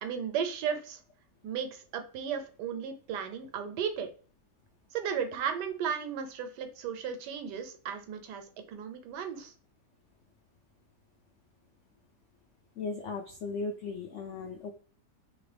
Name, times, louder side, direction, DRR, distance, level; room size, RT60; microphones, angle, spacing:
voice 1, 0.0-1.0 1.4-4.1 4.9-9.5, right 7 dB, 80° right, 8 dB, 1.2 m, -35 dB
voice 2, 12.8-14.7, left 4 dB, 90° left, 3 dB, 0.6 m, -37 dB
2.9 x 2.6 x 3.2 m, 0.39 s
omnidirectional pair, 1.8 m